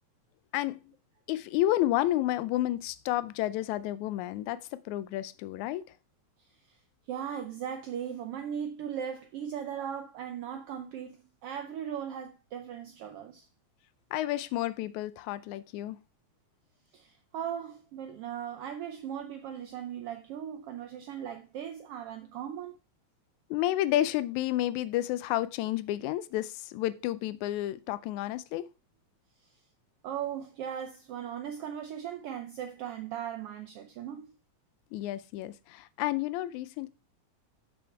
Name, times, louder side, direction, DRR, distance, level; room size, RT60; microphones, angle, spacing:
voice 1, 1.3-5.9 14.1-16.0 23.5-28.7 34.9-36.9, left 14 dB, 85° left, 1.9 m, -30 dB
voice 2, 7.1-13.5 16.9-22.8 30.0-34.3, right 9 dB, 80° right, 1.3 m, -38 dB
7.0 x 6.2 x 4.4 m
omnidirectional pair, 3.3 m